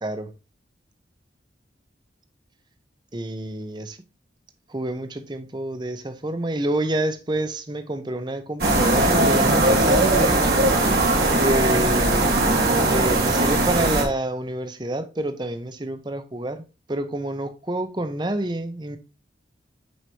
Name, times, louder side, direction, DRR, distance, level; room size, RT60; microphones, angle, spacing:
voice 1, 0.0-0.3 3.1-4.0 4.7-10.5 11.4-12.3 12.9-16.6 16.9-19.0, right 1 dB, 25° right, 0.7 m, -28 dB
sound 1, 8.6-14.0, right 2 dB, 60° right, 1.9 m, -19 dB
9.4 x 4.9 x 2.8 m
head